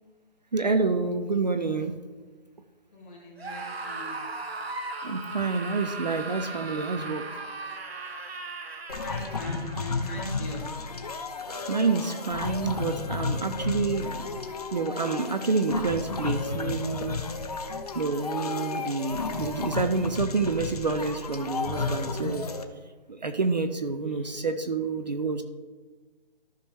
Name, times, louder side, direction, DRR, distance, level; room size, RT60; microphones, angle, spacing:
voice 1, 0.5-1.9 5.0-7.5 11.7-14.2 14.7-17.2 17.9-22.5 23.1-25.4, right 4 dB, 45° right, 8 dB, 0.5 m, -28 dB
voice 2, 2.9-4.2 9.0-10.7 24.1-24.4, left 1 dB, 10° left, -5 dB, 1.0 m, -41 dB
Screaming, 3.4-9.8, right 3 dB, 85° right, 1.3 m, -37 dB
sound 1, 8.9-22.6, left 4 dB, 40° left, 0.7 m, -33 dB
13.5 x 5.8 x 3.3 m, 1.3 s
hypercardioid pair, 175°, 30 cm